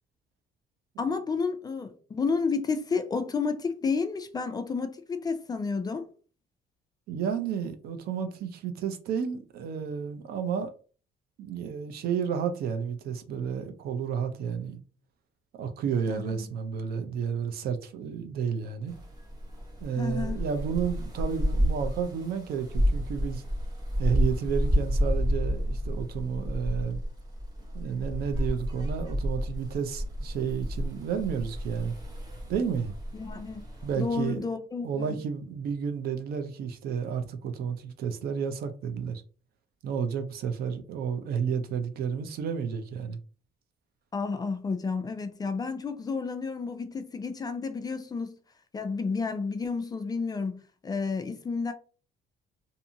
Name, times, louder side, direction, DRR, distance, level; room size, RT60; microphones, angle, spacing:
voice 1, 1.0-6.1 16.1-16.5 19.9-20.4 33.1-33.6 34.0-35.2 44.1-48.3 48.7-51.7, left 4 dB, 25° left, 0.4 m, -31 dB
voice 2, 7.1-10.7 11.4-14.8 15.5-18.9 19.8-23.4 24.0-27.0 27.7-31.9 32.5-32.9 33.8-34.4 34.8-39.2 39.8-43.2, right 7 dB, 65° right, 0.5 m, -31 dB
sound 1, 18.9-34.3, equal, 25° right, 0.9 m, -31 dB
2.6 x 2.5 x 2.7 m
cardioid pair, 110°, 17 cm